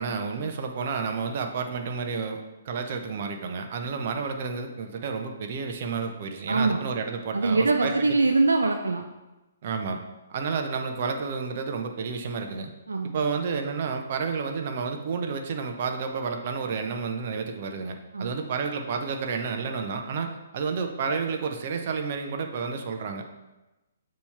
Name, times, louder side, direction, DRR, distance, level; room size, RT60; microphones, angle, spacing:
voice 1, 0.0-8.1 9.6-10.0 10.3-12.7 13.1-23.2, right 5 dB, 45° right, 5 dB, 0.8 m, -30 dB
voice 2, 6.5-6.8 7.3-9.0 12.9-13.2 18.1-18.4, right 3 dB, 75° right, 4 dB, 0.5 m, -23 dB
7.0 x 3.1 x 5.5 m, 1.0 s
figure-of-eight pair, 125°, 0 cm